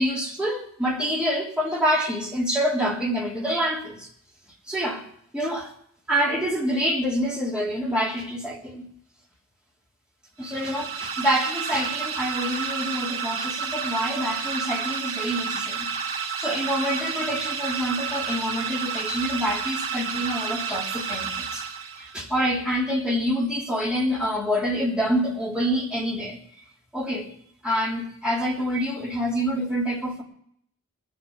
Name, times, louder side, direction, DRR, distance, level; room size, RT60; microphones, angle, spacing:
voice 1, 0.0-4.1 4.7-5.0 5.3-5.7 6.1-8.8 10.4-21.6 22.0-26.4 26.9-27.3 27.6-30.2, equal, 5° right, 3.2 m, -26 dB
sound 1, 10.4-22.3, right 6 dB, 75° right, 1.7 m, -30 dB
19.0 x 7.2 x 8.6 m
head